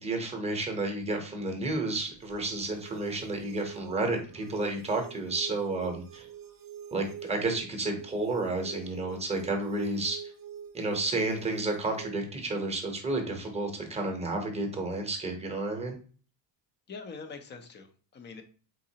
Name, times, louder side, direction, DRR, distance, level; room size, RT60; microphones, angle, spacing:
voice 1, 0.0-6.3 6.9-10.2 10.7-16.0, right 2 dB, 15° right, 3 dB, 0.8 m, -31 dB
sound 1, 2.2-12.2, right 8 dB, 45° right, 0.7 m, -45 dB
voice 2, 16.9-18.4, left 4 dB, 25° left, 7 dB, 0.5 m, -44 dB
4.0 x 3.9 x 2.7 m, 0.41 s
cardioid pair, 155°, 46 cm